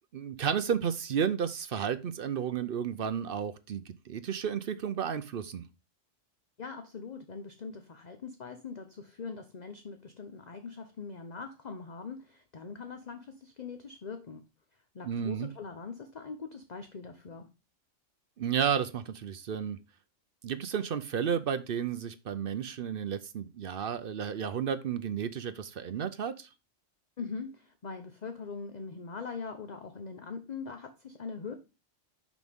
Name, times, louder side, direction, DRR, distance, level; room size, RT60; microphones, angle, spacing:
voice 1, 0.1-5.6 15.0-15.5 18.4-19.8 20.4-26.5, right 8 dB, 55° right, 0.7 m, -32 dB
voice 2, 6.6-14.4 14.9-17.5 27.2-31.5, left 5 dB, 40° left, 0.8 m, -42 dB
6.0 x 6.0 x 3.5 m
omnidirectional pair, 1.3 m